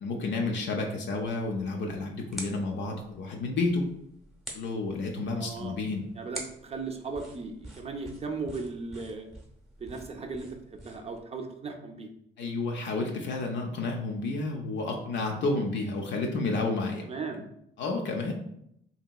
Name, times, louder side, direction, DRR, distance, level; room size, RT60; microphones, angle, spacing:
voice 1, 0.0-3.8 4.5-6.1 12.4-17.0 17.8-18.3, left 3 dB, 65° left, 1 dB, 0.5 m, -30 dB
sound 1, 1.2-11.2, right 1 dB, ahead, 0.8 m, -47 dB
voice 2, 5.4-5.8 6.2-9.3 9.8-12.1 17.0-17.5 17.8-18.0, right 4 dB, 30° right, 3 dB, 0.4 m, -37 dB
2.8 x 2.8 x 2.3 m, 0.74 s
cardioid pair, 90°, 20 cm